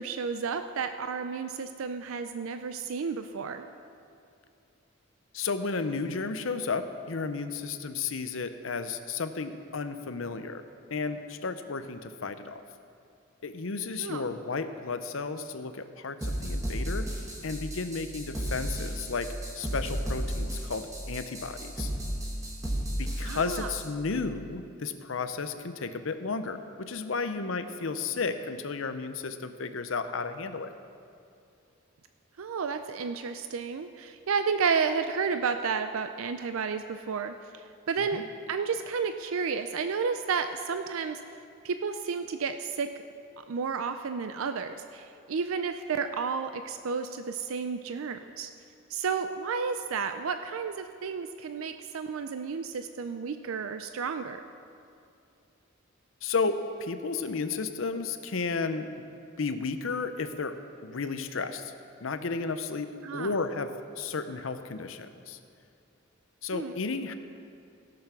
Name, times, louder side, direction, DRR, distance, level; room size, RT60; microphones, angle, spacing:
voice 1, 0.0-3.7 14.0-14.2 23.2-23.7 32.4-41.2 41.6-43.0 43.5-48.5 48.9-54.4 63.0-63.3 66.5-66.8, right 5 dB, 75° right, 8 dB, 0.4 m, -32 dB
voice 2, 5.3-10.6 10.9-12.6 13.4-17.1 17.4-21.9 23.0-30.7 38.0-38.2 56.2-60.5 60.8-61.7 62.0-62.9 63.1-63.7 64.0-65.4 66.4-67.1, left 4 dB, 65° left, 10 dB, 0.7 m, -33 dB
sound 1, 16.2-23.9, equal, 15° right, 1.6 m, -33 dB
17.0 x 6.9 x 5.8 m, 2.5 s
head